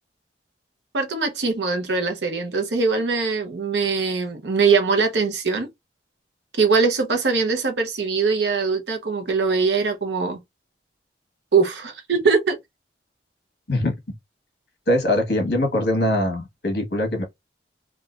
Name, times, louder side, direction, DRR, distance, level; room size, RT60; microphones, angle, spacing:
voice 1, 0.9-5.7 6.6-10.4 11.5-12.6, right 4 dB, 75° right, 0.8 m, -22 dB
voice 2, 14.9-17.2, left 1 dB, 60° left, 1.2 m, -22 dB
3.7 x 2.3 x 2.4 m
head